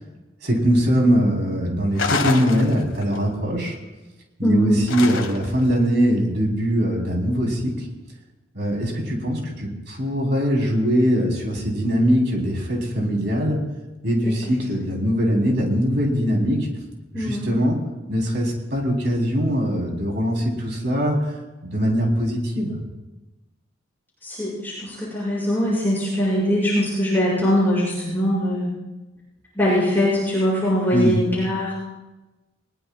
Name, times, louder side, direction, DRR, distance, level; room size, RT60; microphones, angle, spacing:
voice 1, 0.4-3.8 4.4-7.9 8.5-13.6 14.0-16.7 17.1-17.8 18.1-21.3 21.6-22.8 30.9-31.2, equal, 55° right, 0 dB, 3.6 m, -21 dB
sound 1, 2.0-3.2 4.9-5.7, left 4 dB, 80° left, 1.4 m, -27 dB
voice 2, 4.4-4.8 14.2-14.3 17.1-17.5 24.2-28.7 29.5-31.7, equal, 10° left, -9 dB, 6.4 m, -22 dB
20.5 x 20.5 x 2.4 m, 1.1 s
head